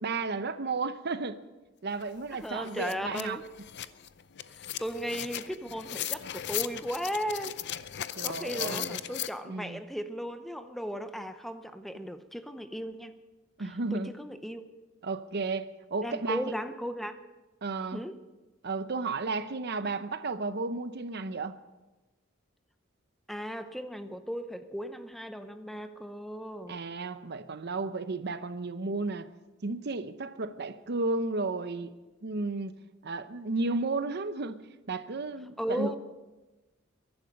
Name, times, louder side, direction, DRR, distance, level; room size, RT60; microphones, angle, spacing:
voice 1, 0.0-1.4 1.8-3.4 8.2-9.0 9.5-9.8 13.6-14.1 15.0-16.5 17.6-18.0 18.6-21.6 26.7-29.3 29.6-31.9 32.2-32.7 33.0-35.9, right 3 dB, 55° right, 0.8 m, -33 dB
sound 1, 2.0-2.1 2.4-9.3, left 11 dB, 60° left, 0.6 m, -37 dB
voice 2, 2.3-3.4 4.6-7.6 8.2-13.2 13.6-14.7 16.0-17.2 17.9-18.2 23.3-26.8 35.6-36.0, equal, ahead, 0.7 m, -36 dB
22.0 x 11.5 x 5.3 m
head